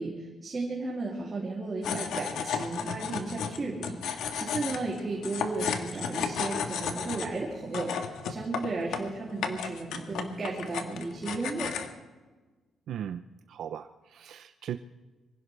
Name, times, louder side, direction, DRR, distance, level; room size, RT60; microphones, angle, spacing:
voice 1, 0.0-11.7, right 3 dB, 25° right, -4 dB, 3.0 m, -34 dB
sound 1, 1.8-11.9, left 7 dB, 80° left, 1.5 m, -34 dB
voice 2, 12.9-13.2 13.5-14.8, right 9 dB, 65° right, 9 dB, 0.6 m, -37 dB
24.5 x 16.5 x 3.4 m, 1.2 s
cardioid pair, 160°, 0 cm